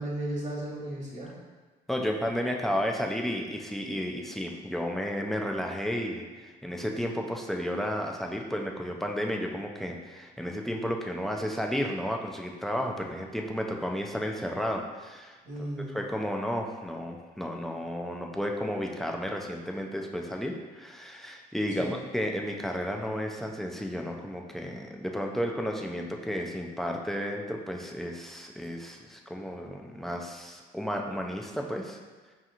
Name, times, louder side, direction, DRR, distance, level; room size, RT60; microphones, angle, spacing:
voice 1, 0.0-1.3 15.4-16.0 21.8-22.0, right 1 dB, 45° right, -4 dB, 1.2 m, -35 dB
voice 2, 1.9-15.4 15.9-32.0, equal, ahead, 1 dB, 0.4 m, -32 dB
5.0 x 2.9 x 2.4 m, 1.3 s
cardioid pair, 110°, 17 cm